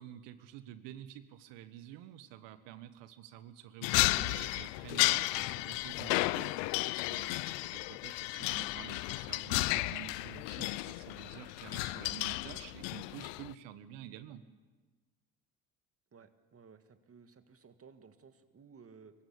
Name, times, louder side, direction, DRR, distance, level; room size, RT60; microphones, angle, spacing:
voice 1, 0.0-14.4, right 11 dB, 75° right, 12 dB, 1.3 m, -49 dB
sound 1, 3.8-13.5, left 21 dB, 75° left, 0.6 m, -33 dB
voice 2, 16.1-19.1, right 6 dB, 30° right, 9 dB, 1.9 m, -57 dB
24.5 x 14.5 x 8.5 m, 1.3 s
hypercardioid pair, 70°, 44 cm